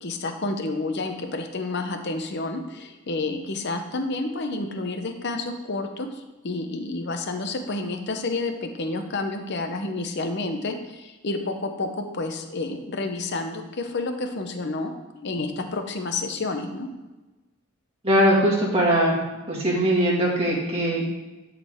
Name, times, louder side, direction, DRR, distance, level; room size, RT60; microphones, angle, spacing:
voice 1, 0.0-6.1 6.4-16.9, left 2 dB, 55° left, 6 dB, 0.8 m, -30 dB
voice 2, 18.0-19.2 19.5-21.1, equal, 30° right, -5 dB, 2.1 m, -21 dB
11.0 x 4.8 x 3.6 m, 1.1 s
head